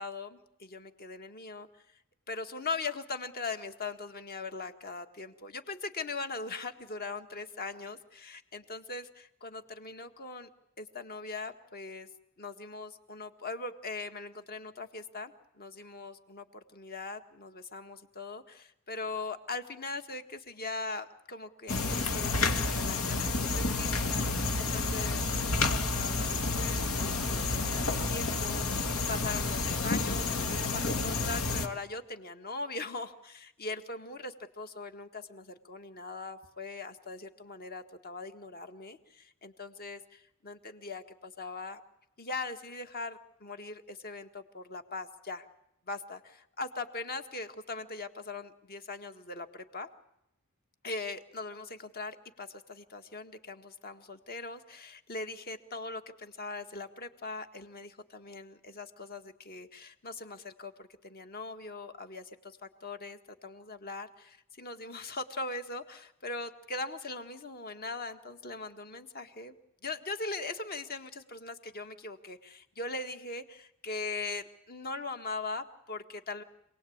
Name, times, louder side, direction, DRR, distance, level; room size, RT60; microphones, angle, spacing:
voice 1, 0.0-1.7 2.3-10.5 10.8-12.1 12.4-41.8 42.2-45.5 45.9-49.9 50.8-69.5 69.8-76.4, left 3 dB, 45° left, 7 dB, 1.8 m, -40 dB
sound 1, 21.7-31.7, left 3 dB, 90° left, 2.2 m, -30 dB
27.0 x 18.5 x 8.7 m, 0.82 s
head